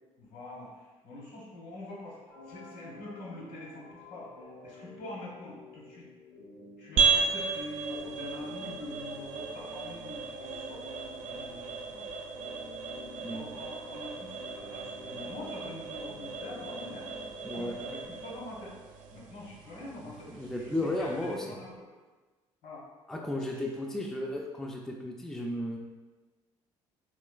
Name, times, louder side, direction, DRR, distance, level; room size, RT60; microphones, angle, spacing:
voice 1, 0.2-2.2 2.4-6.1 6.8-10.8 11.2-12.1 13.3-17.1 17.5-18.7 19.1-21.9 22.6-22.8 23.3-23.7, left 1 dB, 65° left, -5 dB, 1.2 m, -44 dB
sound 1, 2.3-18.3, left 3 dB, 85° left, 0.8 m, -51 dB
sound 2, 7.0-21.6, right 5 dB, 60° right, 0.4 m, -35 dB
voice 2, 17.4-17.7 20.3-21.4 23.1-25.8, left 1 dB, 5° left, -1 dB, 0.4 m, -34 dB
3.1 x 3.0 x 2.3 m, 1.3 s
hypercardioid pair, 55°, 15 cm